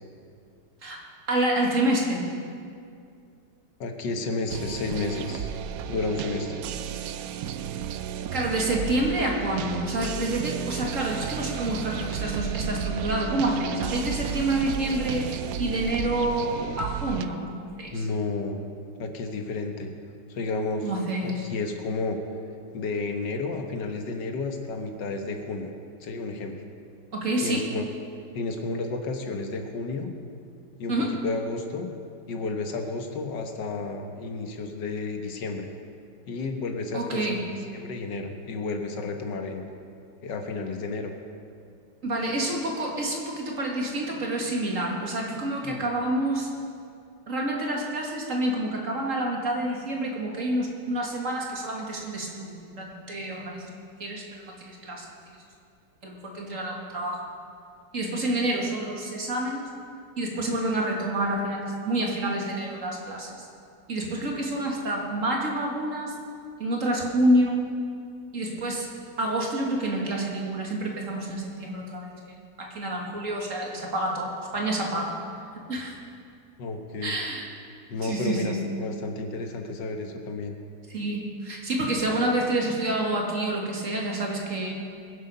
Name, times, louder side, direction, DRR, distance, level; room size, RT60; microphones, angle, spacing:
voice 1, 1.3-2.3 8.3-15.3 15.6-18.1 20.8-21.4 27.1-27.7 30.9-31.2 36.9-37.4 42.0-46.5 47.3-53.7 54.0-55.4 56.0-57.2 57.9-59.7 60.2-63.3 63.9-66.2 66.6-67.6 68.3-68.9 69.2-75.1 75.5-76.0 77.0-77.5 78.0-78.8 80.9-84.7, right 1 dB, 45° right, -1 dB, 2.2 m, -28 dB
voice 2, 3.8-5.5 5.9-6.6 17.9-18.6 19.0-19.9 20.3-20.8 21.2-22.2 22.7-25.7 26.0-26.5 27.4-27.9 28.3-30.1 30.8-30.9 31.2-31.9 32.3-35.7 36.3-37.4 37.7-39.6 40.2-41.1 45.6-45.8 76.6-77.1 77.9-80.6, left 3 dB, 90° left, 4 dB, 1.9 m, -31 dB
sound 1, 4.5-17.2, right 9 dB, 70° right, 0.9 m, -33 dB
21.5 x 7.8 x 5.5 m, 2.4 s
omnidirectional pair, 1.9 m